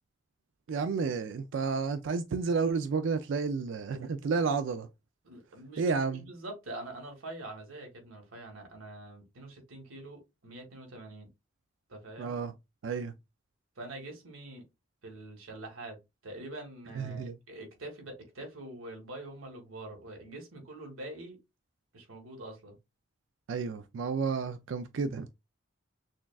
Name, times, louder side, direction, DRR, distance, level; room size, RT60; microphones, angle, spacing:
voice 1, 0.7-4.9 5.8-6.2 12.2-12.5 12.8-13.1 17.0-17.4 23.5-25.3, right 5 dB, 65° right, 0.3 m, -31 dB
voice 2, 5.2-11.3 11.9-12.4 13.8-14.6 15.0-16.0 16.2-21.4 21.9-22.7, right 2 dB, 90° right, 1.6 m, -45 dB
6.2 x 2.3 x 2.3 m
head